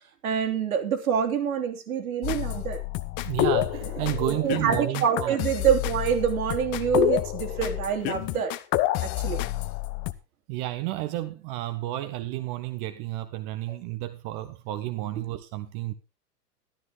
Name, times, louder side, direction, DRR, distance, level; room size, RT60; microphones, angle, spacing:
voice 1, 0.2-2.8 4.2-8.6 9.0-9.4 15.2-15.3, right 7 dB, 65° right, 3.2 m, -26 dB
sound 1, 2.2-10.1, left 15 dB, 25° left, 0.7 m, -28 dB
voice 2, 3.2-5.4 10.5-15.9, right 15 dB, 30° right, 0.9 m, -31 dB
13.5 x 12.5 x 3.8 m
figure-of-eight pair, 100°, 47 cm